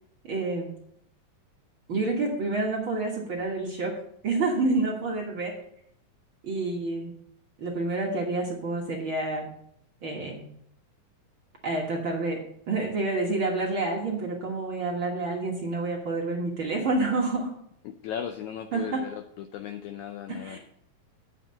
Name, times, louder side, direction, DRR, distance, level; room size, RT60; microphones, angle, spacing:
voice 1, 0.3-0.7 1.9-4.0 4.2-5.5 6.4-7.1 7.6-9.5 10.0-10.4 11.6-12.4 12.7-17.5 18.7-19.0 20.3-20.6, right 3 dB, 50° right, -1 dB, 1.6 m, -28 dB
voice 2, 17.8-20.6, left 9 dB, 90° left, 7 dB, 1.6 m, -37 dB
9.1 x 6.7 x 5.6 m, 0.70 s
omnidirectional pair, 4.0 m